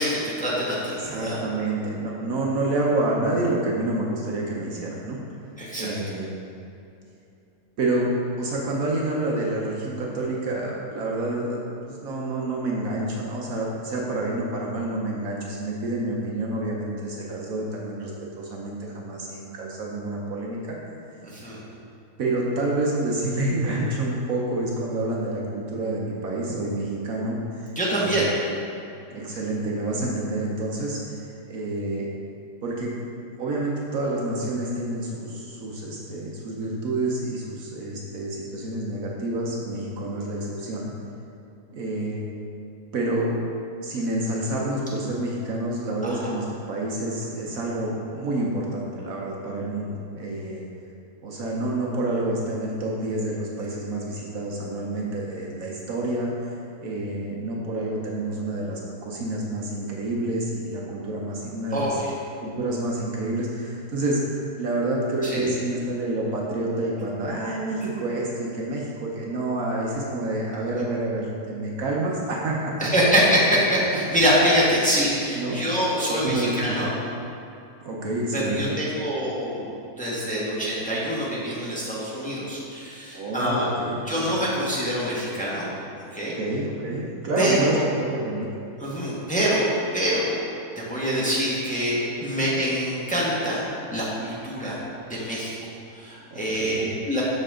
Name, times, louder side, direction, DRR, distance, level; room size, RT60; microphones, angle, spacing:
voice 1, 0.0-1.4 5.6-5.9 21.2-21.6 27.7-28.3 46.0-46.1 61.7-61.9 65.2-65.5 70.7-70.8 72.8-76.9 78.3-79.7 80.0-83.7 84.0-85.7 86.1-86.4 87.4-87.8 88.8-89.7 89.9-93.6 93.9-94.8 95.1-95.5 95.9-97.2, equal, 5° left, -7 dB, 1.3 m, -25 dB
voice 2, 1.0-5.2 5.8-6.3 7.8-8.1 8.4-11.6 11.8-18.1 18.4-20.8 22.2-28.6 29.1-32.1 32.6-40.9 41.7-42.2 42.9-43.4 43.8-50.6 51.2-62.0 62.4-72.9 75.3-75.6 76.1-76.9 77.8-78.7 83.1-84.3 86.3-88.5 92.4-92.5 96.3-96.9, right 2 dB, 65° right, -3 dB, 1.3 m, -28 dB
7.7 x 6.5 x 3.7 m, 2.7 s
omnidirectional pair, 1.7 m